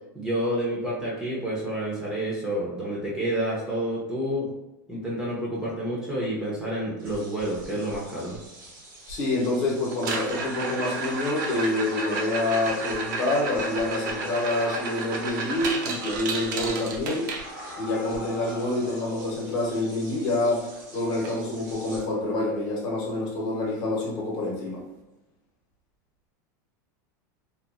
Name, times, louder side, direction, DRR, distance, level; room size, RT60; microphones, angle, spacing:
voice 1, 0.1-4.5 4.9-8.4, right 1 dB, 5° right, -6 dB, 0.5 m, -29 dB
sound 1, 7.0-22.0, right 1 dB, 90° right, 1.2 m, -47 dB
voice 2, 9.1-17.3 17.8-20.6 20.9-24.8, left 2 dB, 40° left, -3 dB, 0.9 m, -27 dB
sound 2, 9.9-17.9 20.2-20.3 20.5-20.8 21.2-21.3 21.9-22.0 23.9-24.0, right 3 dB, 70° right, 0.5 m, -32 dB
sound 3, 10.8-11.0 11.4-11.6 12.0-12.7 13.0-13.3 13.5-13.8 14.1-14.3 14.6-14.9 15.3-15.6 15.9-16.2 16.6-16.8 17.4-19.5, left 3 dB, 85° left, 0.6 m, -42 dB
2.8 x 2.4 x 2.4 m, 0.97 s
supercardioid pair, 160°, 10 cm